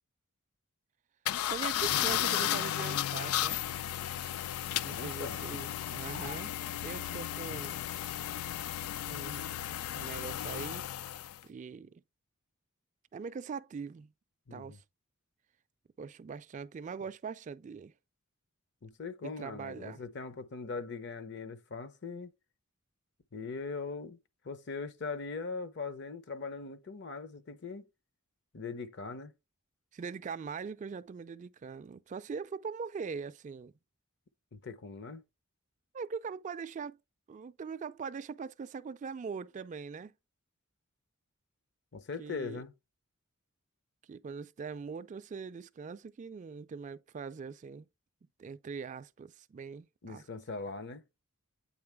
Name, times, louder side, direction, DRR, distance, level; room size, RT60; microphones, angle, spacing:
sound 1, 1.3-11.4, left 12 dB, 80° left, 0.3 m, -34 dB
voice 1, 1.5-3.6 4.8-7.8 9.1-9.5 9.9-10.9 11.4-12.0 13.1-14.1 14.5-14.8 16.0-17.9 19.2-20.0 29.9-33.7 35.9-37.0 37.3-40.1 42.2-42.6 44.1-47.9 48.4-50.2, right 5 dB, 35° right, 0.3 m, -42 dB
voice 2, 4.9-5.4 14.5-14.8 18.8-22.3 23.3-24.2 24.4-27.8 28.5-29.3 34.5-35.2 41.9-42.7 50.0-51.0, left 4 dB, 55° left, 0.8 m, -40 dB
8.6 x 3.7 x 3.4 m
head